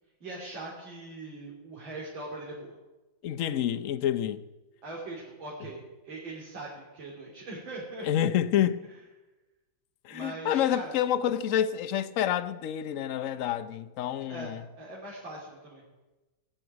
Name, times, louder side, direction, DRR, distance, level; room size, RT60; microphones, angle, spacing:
voice 1, 0.2-2.8 4.8-8.3 8.9-9.0 10.1-11.0 14.3-15.8, right 2 dB, 90° right, 3.8 m, -41 dB
voice 2, 3.2-4.4 8.0-8.8 10.0-14.6, left 10 dB, 60° left, 0.9 m, -28 dB
17.5 x 8.0 x 9.4 m
omnidirectional pair, 2.1 m